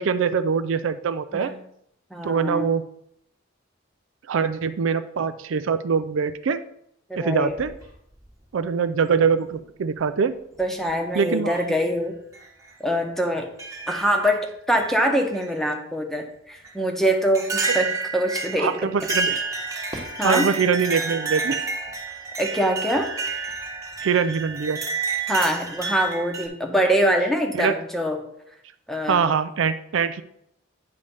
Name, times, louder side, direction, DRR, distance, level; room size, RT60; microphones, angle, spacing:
voice 1, 0.0-1.5 2.2-2.8 4.3-6.6 7.2-7.7 8.5-10.4 11.1-11.5 17.6-17.8 18.6-19.4 20.2-21.6 24.0-24.8 27.5-27.7 29.1-30.2, right 6 dB, 75° right, 12 dB, 0.4 m, -23 dB
voice 2, 2.1-2.7 7.1-7.6 10.6-12.2 12.8-13.5 13.9-18.8 19.9-20.5 22.4-23.1 25.3-28.3 28.9-29.3, equal, ahead, 3 dB, 0.9 m, -24 dB
sound 1, 7.5-8.3 9.5-9.6 10.6-10.9 11.5-11.7 12.3-12.4 13.6-14.3 14.7-15.5 16.6-16.7 17.3-26.5, right 4 dB, 15° right, 1.2 m, -30 dB
9.5 x 3.3 x 5.4 m, 0.75 s
head